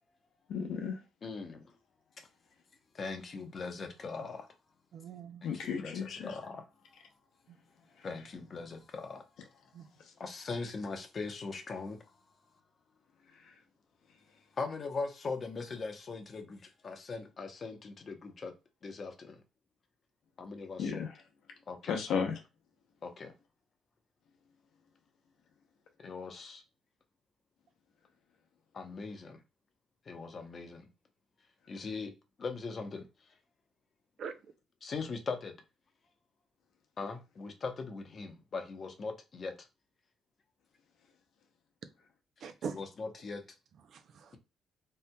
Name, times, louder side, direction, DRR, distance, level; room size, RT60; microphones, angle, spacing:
voice 1, 0.5-1.0 5.4-6.4 13.4-13.5 20.8-21.2 21.9-22.4, left 6 dB, 80° left, 0.7 m, -34 dB
voice 2, 1.2-1.6 3.0-4.4 5.8-6.6 8.0-9.2 10.2-12.0 14.6-16.6 16.8-18.5 18.8-19.1 20.4-21.1 21.7-22.0 23.0-23.3 26.0-26.6 28.8-29.4 30.1-30.8 31.7-32.1 32.4-33.0 34.8-35.5 37.0-39.5 42.7-43.4, left 4 dB, 45° left, 0.7 m, -40 dB
voice 3, 4.9-5.4 7.5-7.6 9.7-9.9 34.2-34.5 42.4-42.8 43.7-44.4, right 6 dB, 65° right, 0.5 m, -43 dB
3.5 x 2.8 x 2.2 m
cardioid pair, 90°, 0 cm